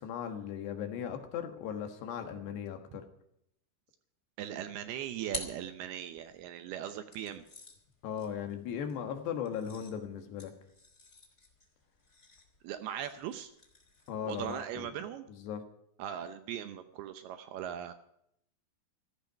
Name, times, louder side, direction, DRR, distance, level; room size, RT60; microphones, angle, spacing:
voice 1, 0.0-3.1 8.0-10.5 14.1-14.9 15.3-15.6, left 8 dB, 75° left, 5 dB, 3.5 m, -38 dB
voice 2, 4.4-7.4 12.6-13.5 14.3-15.3 16.0-17.9, right 10 dB, 75° right, 9 dB, 2.5 m, -39 dB
sound 1, 4.7-6.4 7.1-14.7, equal, 15° left, 3.1 m, -49 dB
15.0 x 14.0 x 5.7 m, 0.74 s
omnidirectional pair, 5.0 m